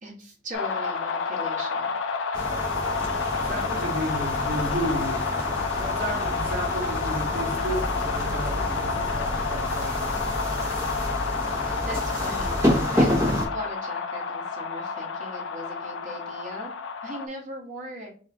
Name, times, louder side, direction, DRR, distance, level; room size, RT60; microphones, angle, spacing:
voice 1, 0.0-2.0 11.6-16.7 17.0-18.1, equal, 45° right, 1.5 m, -38 dB
sound 1, 0.5-17.3, left 5 dB, 85° left, 0.4 m, -30 dB
sound 2, 2.3-13.5, equal, 15° right, 0.8 m, -29 dB
voice 2, 3.4-5.2 5.7-10.1, right 1 dB, 60° right, 1.3 m, -33 dB
sound 3, 4.3-12.4, equal, 10° left, 0.5 m, -38 dB
4.8 x 2.4 x 2.7 m
head